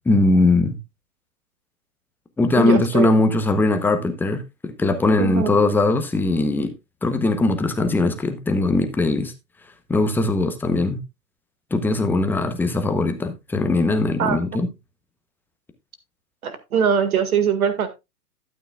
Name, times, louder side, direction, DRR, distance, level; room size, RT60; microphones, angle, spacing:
voice 1, 0.1-0.8 2.4-6.7 7.0-9.3 9.9-11.0 11.7-14.7, left 2 dB, 5° left, 0.8 m, -20 dB
voice 2, 2.6-3.1 5.2-5.6 14.2-14.4 16.4-17.9, right 7 dB, 65° right, 2.1 m, -21 dB
12.0 x 9.0 x 2.4 m
figure-of-eight pair, 120°, 47 cm